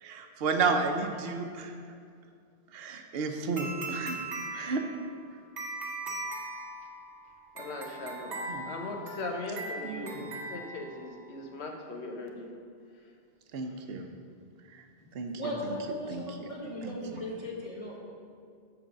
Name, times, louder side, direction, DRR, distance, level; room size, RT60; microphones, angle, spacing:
voice 1, 0.0-1.7 2.7-4.2 4.5-4.8 8.5-8.7 9.8-10.3 13.5-14.1 15.1-15.3 16.1-16.2 16.8-17.2, right 4 dB, 70° right, 5 dB, 0.9 m, -32 dB
sound 1, 3.6-11.3, right 2 dB, 45° right, 1.2 m, -40 dB
voice 2, 7.5-12.5, left 2 dB, 85° left, 2 dB, 1.3 m, -39 dB
voice 3, 15.3-18.0, equal, 30° left, -4 dB, 1.5 m, -37 dB
7.4 x 4.6 x 6.6 m, 2.3 s
omnidirectional pair, 1.1 m